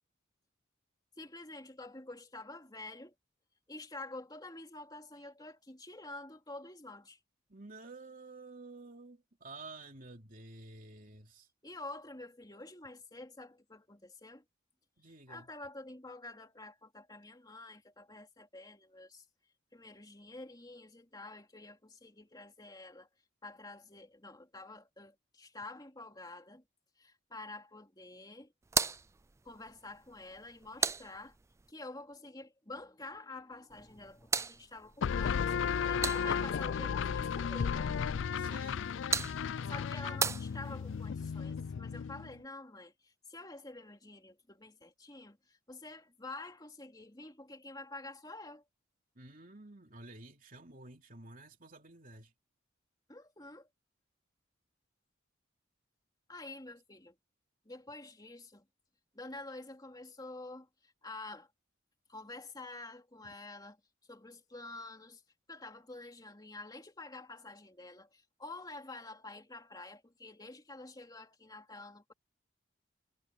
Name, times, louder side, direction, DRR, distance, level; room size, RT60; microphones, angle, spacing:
voice 1, 1.2-3.1 3.7-7.2 11.6-14.4 15.3-19.3 19.7-23.1 23.4-26.6 27.0-28.5 29.4-31.4 31.7-37.9 39.7-48.6 53.1-53.7 56.3-57.1 57.6-58.7 59.1-61.5 62.1-63.8 64.1-65.2 65.5-72.1, left 2 dB, 20° left, 3.0 m, -48 dB
voice 2, 7.5-11.5 15.0-15.5 38.4-38.9 49.1-52.3, right 2 dB, 45° right, 3.1 m, -51 dB
sound 1, 28.6-31.7 33.7-36.6 38.6-41.1, right 5 dB, 15° right, 0.3 m, -38 dB
sound 2, 35.0-42.4, left 7 dB, 75° left, 0.4 m, -34 dB
head